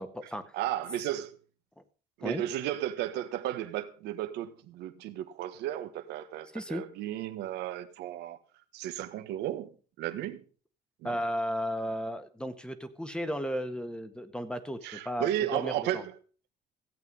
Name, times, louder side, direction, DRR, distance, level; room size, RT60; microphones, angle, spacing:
voice 1, 0.0-0.5 2.2-2.4 6.5-6.8 11.0-16.0, equal, 5° left, 1.6 m, -34 dB
voice 2, 0.5-1.3 2.2-8.4 8.7-10.4 11.0-11.2 14.8-16.1, right 12 dB, 85° right, 1.5 m, -34 dB
15.5 x 8.3 x 5.4 m
cardioid pair, 110°, 17 cm